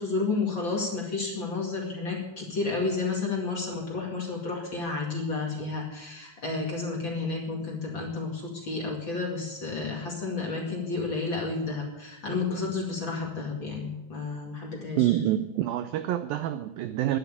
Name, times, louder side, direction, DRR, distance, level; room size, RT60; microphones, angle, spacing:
voice 1, 0.0-15.2, left 3 dB, 35° left, -2 dB, 2.2 m, -31 dB
voice 2, 15.0-17.2, right 13 dB, 85° right, 11 dB, 2.1 m, -27 dB
11.0 x 11.0 x 8.5 m, 0.96 s
omnidirectional pair, 4.7 m